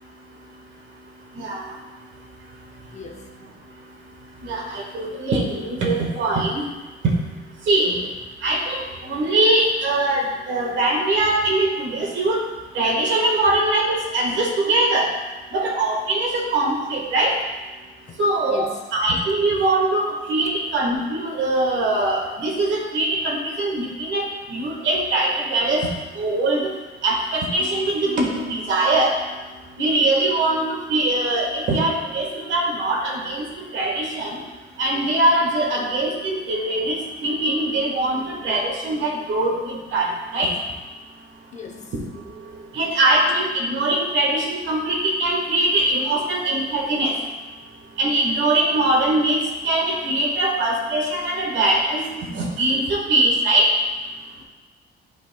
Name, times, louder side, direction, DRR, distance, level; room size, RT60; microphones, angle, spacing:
voice 1, 1.3-1.7 4.4-6.6 7.0-7.1 7.7-7.9 8.4-12.4 12.7-15.1 15.5-17.4 18.2-26.6 27.0-29.2 29.8-33.4 33.7-34.4 34.8-40.5 42.7-47.1 48.0-53.7, right 2 dB, 65° right, -1 dB, 1.6 m, -22 dB
voice 2, 2.9-3.3 18.1-18.2 18.5-18.8 41.5-41.9 54.4-54.5, left 5 dB, 35° left, 2 dB, 0.7 m, -37 dB
11.0 x 4.4 x 2.3 m, 1.2 s
cardioid pair, 145°, 20 cm